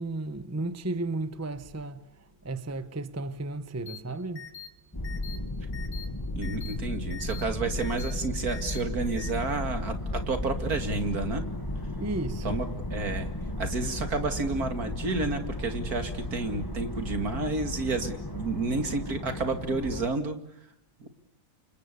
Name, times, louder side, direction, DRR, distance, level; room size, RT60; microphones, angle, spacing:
voice 1, 0.0-2.1 2.4-4.5 12.0-12.6, right 2 dB, 10° right, 0.9 m, -34 dB
sound 1, 3.9-4.0 4.4-4.7 5.0-5.4 5.7-6.0 6.4-6.7 7.1-7.4 7.8-8.1 8.5-8.8 9.2-9.3, left 9 dB, 85° left, 4.2 m, -43 dB
sound 2, 4.9-20.1, left 1 dB, 15° left, 1.5 m, -34 dB
voice 2, 6.3-11.4 12.4-12.7 12.9-13.3 13.6-20.4 21.0-21.1, right 3 dB, 60° right, 2.8 m, -30 dB
28.5 x 25.5 x 6.9 m
omnidirectional pair, 1.8 m